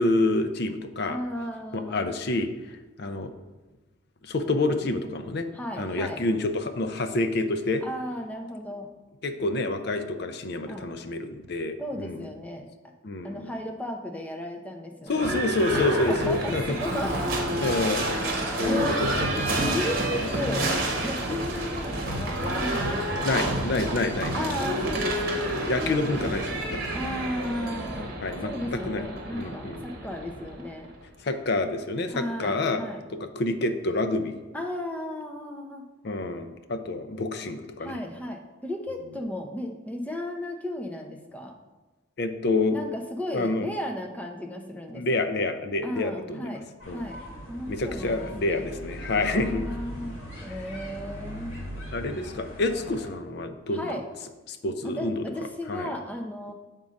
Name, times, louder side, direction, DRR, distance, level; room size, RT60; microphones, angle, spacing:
voice 1, 0.0-1.2 1.7-3.3 4.2-5.5 5.8-7.8 9.2-12.2 13.0-13.5 15.1-16.8 17.6-18.1 18.6-19.6 20.2-20.7 23.2-24.5 25.6-26.8 28.2-29.1 29.3-29.8 31.2-32.8 33.2-34.4 36.0-38.0 42.2-42.8 43.3-43.7 44.9-46.6 46.9-47.1 47.7-49.6 51.9-54.0 54.5-55.3 55.7-55.9, left 2 dB, 55° left, 8 dB, 0.5 m, -28 dB
voice 2, 1.1-2.0 5.5-6.2 7.8-8.9 10.7-10.9 11.8-12.7 13.2-15.3 15.7-17.1 18.6-19.1 19.3-20.7 21.0-23.5 24.3-25.5 25.8-26.3 26.9-28.1 28.4-30.9 32.1-33.0 34.5-35.9 37.8-41.5 42.7-45.0 45.8-47.2 47.5-48.6 49.3-51.7 53.7-54.0 54.8-56.5, left 1 dB, 5° left, 2 dB, 0.6 m, -34 dB
Livestock farm animals working animals / Bell, 15.1-31.0, right 1 dB, 45° right, 1.1 m, -29 dB
sound 1, 46.8-53.1, equal, 80° left, 2.3 m, -39 dB
7.0 x 3.7 x 5.2 m, 1.2 s
head